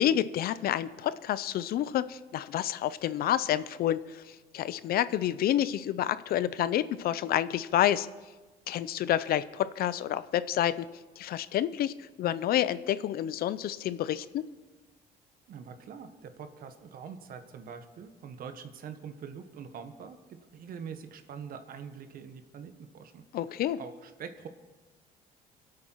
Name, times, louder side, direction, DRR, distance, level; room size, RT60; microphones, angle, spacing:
voice 1, 0.0-8.1 8.7-10.9 11.2-14.4 23.3-23.8, left 11 dB, 65° left, 15 dB, 0.6 m, -29 dB
voice 2, 15.5-23.2 23.8-24.5, right 7 dB, 60° right, 9 dB, 1.3 m, -44 dB
24.5 x 8.6 x 4.6 m, 1.2 s
cardioid pair, 110°, 17 cm